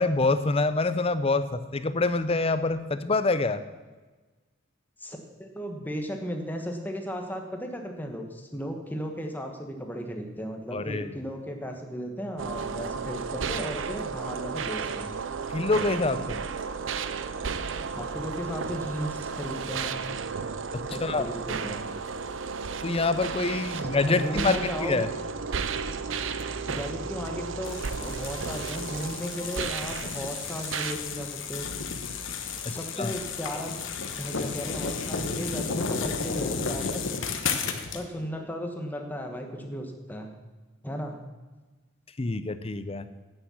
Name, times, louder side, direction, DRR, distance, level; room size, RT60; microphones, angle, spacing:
voice 1, 0.0-3.6 10.7-11.1 15.5-16.4 20.7-21.2 22.8-25.1 32.7-33.1 42.2-43.1, left 3 dB, 30° left, 12 dB, 0.6 m, -26 dB
voice 2, 5.0-15.2 17.9-20.1 20.9-21.8 23.7-25.0 26.7-31.7 32.7-33.8 34.2-37.0 37.9-40.3 40.8-41.2, equal, 10° left, 3 dB, 1.3 m, -35 dB
sound 1, 12.4-30.9, right 5 dB, 70° right, 0.6 m, -33 dB
sound 2, 27.6-38.0, left 5 dB, 70° left, 1.2 m, -33 dB
9.7 x 9.1 x 7.1 m, 1.3 s
head